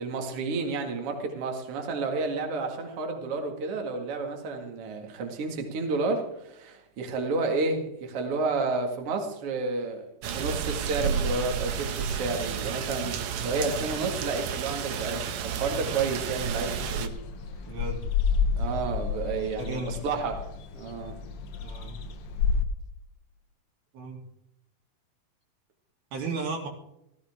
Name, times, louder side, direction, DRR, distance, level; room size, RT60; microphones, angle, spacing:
voice 1, 0.0-17.1 18.6-20.5 20.7-21.2, right 3 dB, 45° right, 2 dB, 2.6 m, -31 dB
sound 1, 10.2-17.1, right 7 dB, 65° right, 1.9 m, -31 dB
sound 2, 16.8-22.6, left 6 dB, 80° left, 1.3 m, -30 dB
voice 2, 17.6-18.0 19.6-20.1 21.6-22.0 23.9-24.2 26.1-26.7, right 3 dB, 80° right, -1 dB, 5.2 m, -34 dB
16.5 x 15.5 x 3.7 m, 0.80 s
omnidirectional pair, 4.3 m